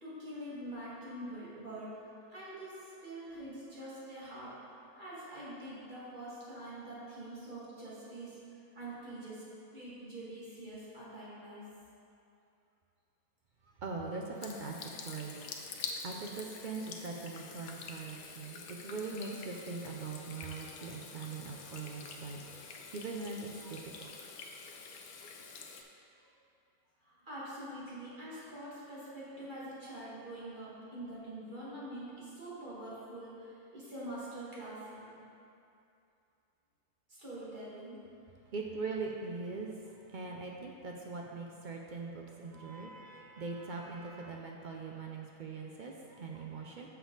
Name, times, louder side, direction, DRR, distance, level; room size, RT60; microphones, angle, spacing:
voice 1, 0.0-1.9 2.3-8.4 8.7-9.4 9.7-11.6 26.2-26.3 27.0-35.2 37.1-38.0 42.5-44.3, right 1 dB, 35° right, -9 dB, 2.1 m, -45 dB
voice 2, 13.8-15.3 15.7-24.1 38.5-42.9 43.3-46.9, right 4 dB, 65° right, 0 dB, 0.4 m, -41 dB
Water tap faucet / Sink (filling or washing), 14.4-25.8, left 5 dB, 85° left, 1.1 m, -47 dB
6.9 x 6.7 x 3.9 m, 2.6 s
omnidirectional pair, 1.5 m